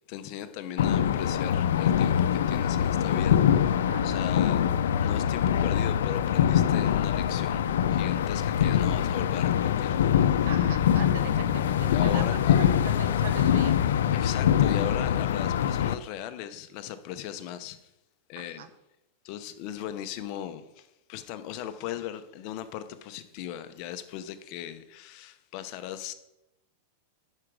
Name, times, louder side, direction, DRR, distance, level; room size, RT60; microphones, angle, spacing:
voice 1, 0.1-4.7 5.0-10.5 11.9-12.6 14.1-17.8 18.3-18.7 19.2-26.1, left 11 dB, 40° left, 0.7 m, -38 dB
sound 1, 0.8-15.9, left 9 dB, 85° left, 0.5 m, -24 dB
voice 2, 3.9-4.4 10.4-13.8 18.4-18.7, right 7 dB, 65° right, 1.0 m, -40 dB
10.0 x 5.0 x 6.1 m
supercardioid pair, 160°, 0 cm